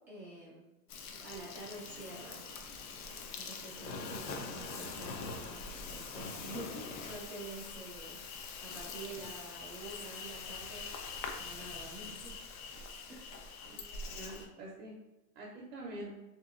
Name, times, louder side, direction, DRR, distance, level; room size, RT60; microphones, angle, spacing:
voice 1, 0.1-0.6 1.1-2.4 3.3-8.2 8.6-10.9 11.4-12.3 13.1-13.4, right 2 dB, 5° right, -11 dB, 0.4 m, -48 dB
sound 1, 0.9-9.0, equal, 90° left, 0.9 m, -59 dB
Insect, 0.9-14.5, left 4 dB, 65° left, 0.6 m, -44 dB
voice 2, 13.7-15.0 15.3-16.2, right 1 dB, 50° right, -3 dB, 0.6 m, -46 dB
2.8 x 2.7 x 2.4 m, 1.0 s
hypercardioid pair, 135°, 48 cm